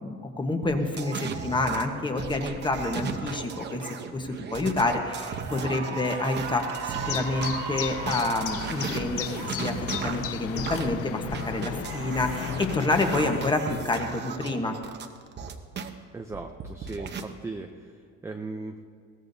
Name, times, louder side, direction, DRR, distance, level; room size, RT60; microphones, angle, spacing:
voice 1, 0.0-14.8, left 2 dB, 15° left, 4 dB, 1.1 m, -28 dB
sound 1, 0.6-7.5 8.0-15.9 16.3-17.2, right 6 dB, 35° right, 0.8 m, -36 dB
Cheering / Applause, 4.1-4.3 4.8-11.3, right 6 dB, 65° right, 2.0 m, -38 dB
sound 2, 7.0-13.5, left 12 dB, 50° left, 0.5 m, -35 dB
voice 2, 16.1-17.9 18.2-18.8, right 3 dB, 10° right, 3 dB, 0.5 m, -37 dB
21.5 x 17.5 x 2.7 m, 2.1 s
cardioid pair, 165°, 31 cm